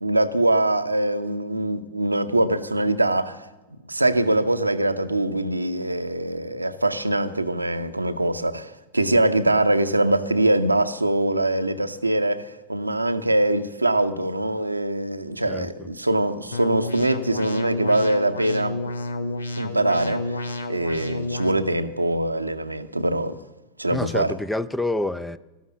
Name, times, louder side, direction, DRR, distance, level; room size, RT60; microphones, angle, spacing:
voice 1, 0.0-3.4 3.9-18.8 19.6-23.3 23.8-24.4, right 1 dB, 85° right, 0.8 m, -23 dB
sound 1, 16.5-21.5, left 2 dB, 80° left, 1.1 m, -30 dB
voice 2, 23.9-25.4, left 2 dB, 5° left, 0.5 m, -27 dB
13.0 x 12.5 x 8.2 m
figure-of-eight pair, 90°, 0 cm